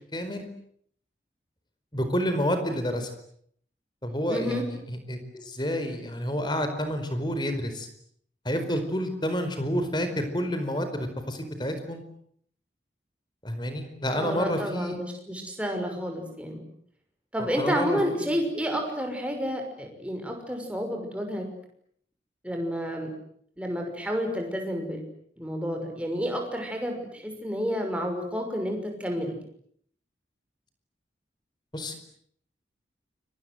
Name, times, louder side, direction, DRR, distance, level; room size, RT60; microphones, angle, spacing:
voice 1, 0.1-0.4 1.9-3.1 4.0-7.9 8.4-12.0 13.4-15.0 17.4-18.3 31.7-32.0, equal, 25° left, 8 dB, 4.7 m, -29 dB
voice 2, 4.3-4.7 14.1-16.6 17.3-21.5 22.4-23.1 23.6-25.0 25.4-29.4, equal, 5° right, 3 dB, 6.1 m, -30 dB
29.5 x 24.5 x 8.0 m, 0.66 s
head